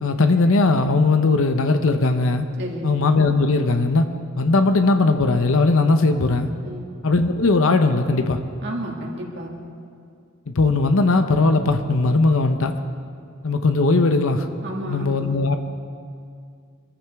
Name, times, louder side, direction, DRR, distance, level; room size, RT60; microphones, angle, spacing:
voice 1, 0.0-2.5 2.8-4.1 4.4-6.5 7.0-8.4 10.5-12.8 13.4-14.5 14.9-15.6, left 3 dB, 70° left, 7 dB, 0.8 m, -18 dB
voice 2, 2.6-2.9 6.6-6.9 8.6-9.5 14.6-15.1, right 1 dB, 55° right, -1 dB, 2.2 m, -31 dB
24.0 x 14.0 x 3.6 m, 2.3 s
head